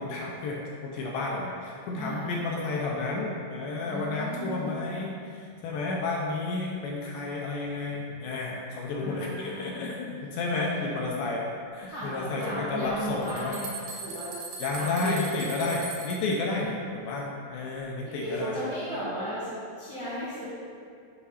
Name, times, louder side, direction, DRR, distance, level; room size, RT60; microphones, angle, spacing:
voice 1, 0.0-13.6 14.6-18.6, left 3 dB, 80° left, -2 dB, 2.3 m, -31 dB
voice 2, 2.0-2.5 3.9-4.8 9.0-9.9 10.5-11.0 11.9-14.3 14.7-15.3 16.2-16.3 16.6-16.9 18.0-19.5 19.8-20.4, right 1 dB, 55° right, -13 dB, 1.3 m, -35 dB
sound 1, 12.8-12.9 13.2-16.4, right 4 dB, 85° right, 3.0 m, -39 dB
8.0 x 3.1 x 5.5 m, 2.4 s
omnidirectional pair, 4.6 m